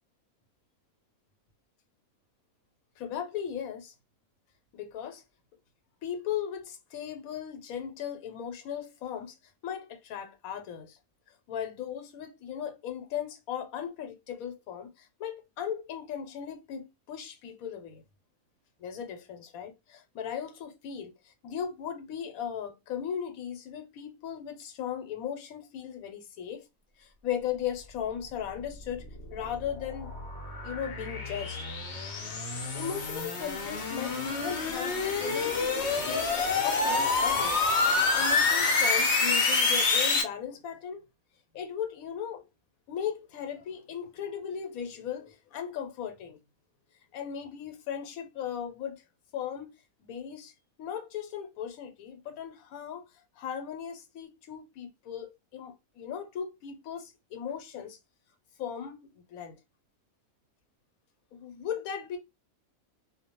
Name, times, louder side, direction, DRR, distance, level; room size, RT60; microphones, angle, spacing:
voice 1, 3.0-3.9 4.7-5.2 6.0-9.4 9.6-11.0 11.5-18.0 18.8-26.6 27.0-30.1 30.6-31.6 32.7-37.7 38.1-41.0 41.5-42.4 42.9-46.4 47.1-49.0 49.3-49.7 50.0-50.5 50.8-53.0 53.4-58.0 58.6-59.5 61.3-62.2, left 8 dB, 80° left, 1.1 m, -37 dB
sound 1, 28.9-40.2, left 4 dB, 60° left, 0.8 m, -27 dB
2.3 x 2.1 x 2.9 m
omnidirectional pair, 1.5 m